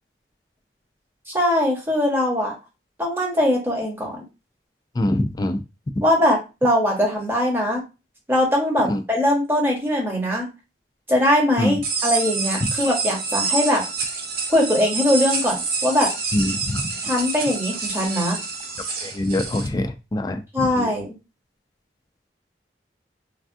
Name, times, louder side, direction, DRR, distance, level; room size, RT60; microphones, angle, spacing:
voice 1, 1.3-2.5 3.0-4.2 6.0-7.8 8.3-10.5 11.1-13.8 14.5-15.6 15.8-16.1 17.0-18.4 20.5-21.1, left 1 dB, 15° right, -2 dB, 1.0 m, -21 dB
voice 2, 5.0-5.6 6.0-6.1 8.9-9.0 11.6-11.8 12.6-12.7 16.3-16.9 19.0-20.9, left 1 dB, 20° left, 7 dB, 0.3 m, -24 dB
sound 1, 11.8-19.7, right 4 dB, 55° right, 0.6 m, -27 dB
3.3 x 2.3 x 2.6 m, 0.28 s
head